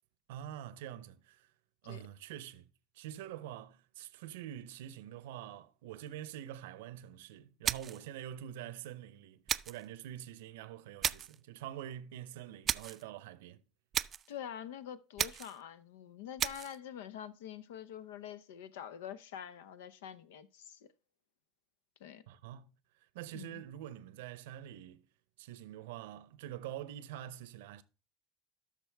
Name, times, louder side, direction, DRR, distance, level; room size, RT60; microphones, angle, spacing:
voice 1, 0.3-1.5 1.8-2.7 2.9-13.6 22.3-22.7 23.0-25.1 25.4-27.8, right 11 dB, 80° right, 0.6 m, -46 dB
sound 1, 7.6-8.1 9.5-9.9 11.0-11.4 12.7-13.0 13.9-14.3 15.2-15.6 16.4-16.8, right 8 dB, 40° right, 0.4 m, -34 dB
voice 2, 14.3-20.9 22.0-22.2 23.3-23.6, left 9 dB, 80° left, 0.6 m, -46 dB
12.5 x 6.0 x 3.4 m
hypercardioid pair, 90°, 0 cm